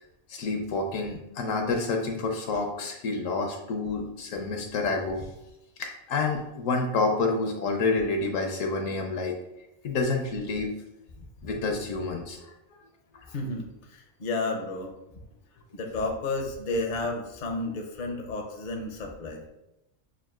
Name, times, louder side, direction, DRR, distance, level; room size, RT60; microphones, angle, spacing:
voice 1, 0.3-5.2 5.8-9.4 9.8-10.7 11.4-12.4, left 3 dB, 75° left, 3 dB, 0.9 m, -28 dB
voice 2, 13.3-14.9 15.7-19.4, left 2 dB, 55° left, 2 dB, 0.5 m, -32 dB
6.3 x 2.4 x 2.3 m, 0.88 s
omnidirectional pair, 1.4 m